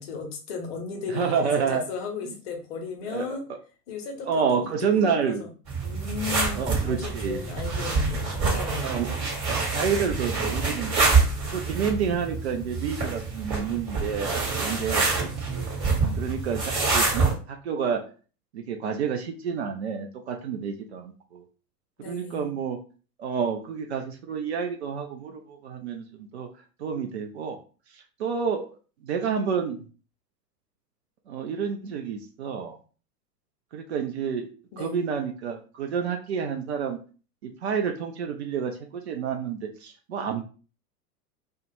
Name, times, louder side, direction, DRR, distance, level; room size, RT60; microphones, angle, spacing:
voice 1, 0.0-3.5 3.9-5.5 5.8-9.1 22.0-22.5 34.7-35.0, left 5 dB, 40° left, 4 dB, 0.7 m, -35 dB
voice 2, 1.1-1.8 2.2-2.3 3.1-3.4 4.3-5.4 6.5-7.4 8.5-9.2 9.5-10.9 11.5-15.7 16.2-18.0 18.5-21.4 22.0-22.8 23.2-26.5 26.8-27.6 27.9-28.6 29.0-29.8 31.3-32.8 33.7-34.5 34.8-37.0 37.4-40.4, right 6 dB, 45° right, 3 dB, 0.4 m, -29 dB
sound 1, 5.7-17.3, right 4 dB, 30° right, 1.1 m, -26 dB
2.2 x 2.1 x 3.0 m, 0.36 s
figure-of-eight pair, 95°, 48 cm